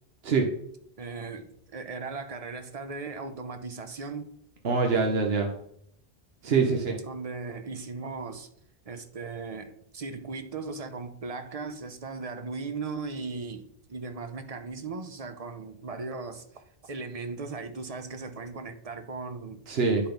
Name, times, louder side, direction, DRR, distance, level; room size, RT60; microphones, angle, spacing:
voice 1, 1.0-4.3 6.5-8.5 8.8-19.6, right 4 dB, 40° right, 0.9 m, -38 dB
voice 2, 4.6-5.5 6.4-7.0 19.7-20.1, right 4 dB, 75° right, 1.3 m, -24 dB
9.9 x 4.4 x 5.2 m
omnidirectional pair, 1.0 m